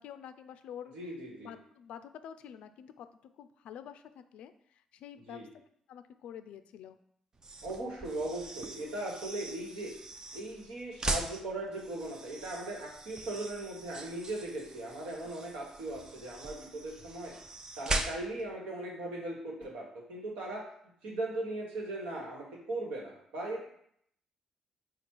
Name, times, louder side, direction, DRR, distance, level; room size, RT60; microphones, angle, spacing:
voice 1, 0.0-0.9 1.4-5.5 5.9-7.0, left 9 dB, 75° left, 10 dB, 0.3 m, -48 dB
voice 2, 0.9-1.5 5.3-5.5 7.6-9.9 10.3-17.3 17.8-20.6 21.0-23.6, right 2 dB, 80° right, -2 dB, 1.3 m, -38 dB
sound 1, 7.3-18.5, right 2 dB, 35° right, 0.6 m, -40 dB
4.3 x 2.4 x 4.5 m, 0.68 s
hypercardioid pair, 50°, 2 cm